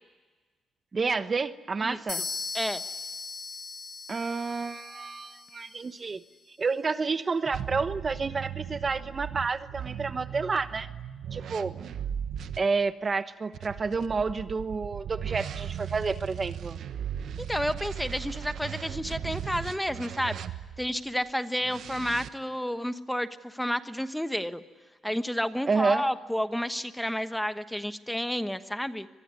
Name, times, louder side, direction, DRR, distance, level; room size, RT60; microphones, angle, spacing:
voice 1, 0.9-2.2 4.1-6.2 6.6-10.9 11.3-11.7 12.6-16.8 25.7-26.0, right 4 dB, 35° right, 12 dB, 1.0 m, -29 dB
sound 1, 2.1-5.8, left 4 dB, 40° left, 1.8 m, -38 dB
sound 2, 7.5-12.6 13.5-20.9 21.6-22.3, right 9 dB, 70° right, 1.2 m, -37 dB
voice 2, 17.4-20.4 20.8-24.6 25.0-29.1, equal, 5° left, 11 dB, 1.2 m, -31 dB
24.5 x 21.5 x 9.7 m, 1.4 s
cardioid pair, 85°, 0 cm